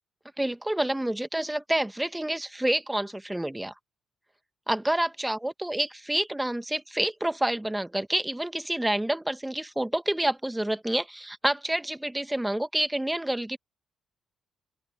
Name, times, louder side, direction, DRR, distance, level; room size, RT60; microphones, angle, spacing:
voice 1, 0.4-3.7 4.7-13.6, right 1 dB, 10° right, 1.3 m, -28 dB
open air
supercardioid pair, 70°, 0 cm